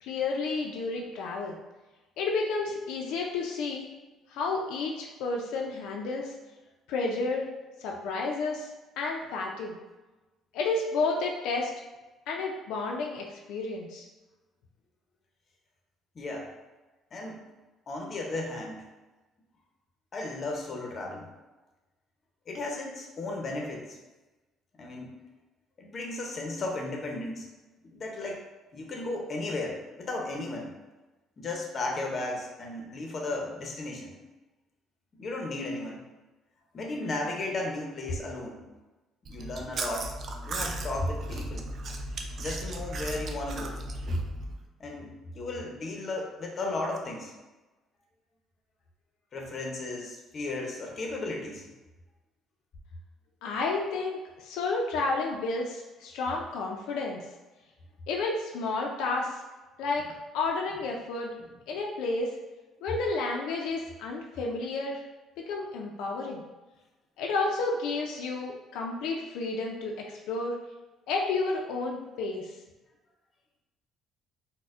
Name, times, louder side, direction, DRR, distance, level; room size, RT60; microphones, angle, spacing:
voice 1, 0.0-1.6 2.2-3.8 4.3-6.3 6.9-7.5 7.8-8.7 9.0-9.8 10.5-11.7 12.3-14.0 53.4-57.2 58.1-59.4 59.8-60.1 60.3-61.3 61.7-62.3 62.8-65.0 65.4-66.4 67.2-70.6 71.1-72.5, left 3 dB, 85° left, -1 dB, 0.4 m, -31 dB
voice 2, 16.2-16.5 17.1-17.4 17.9-18.8 20.1-21.3 22.5-23.9 24.8-25.1 25.8-27.5 27.8-28.4 28.7-30.7 31.4-34.2 35.2-36.0 36.7-38.6 39.3-40.1 40.4-41.7 42.4-43.8 44.8-47.3 49.3-51.6, left 2 dB, 40° left, 0 dB, 0.7 m, -35 dB
Chewing mastication, 39.2-44.6, right 1 dB, 45° right, 0.3 m, -36 dB
4.1 x 2.1 x 2.4 m, 1.1 s
cardioid pair, 120°, 0 cm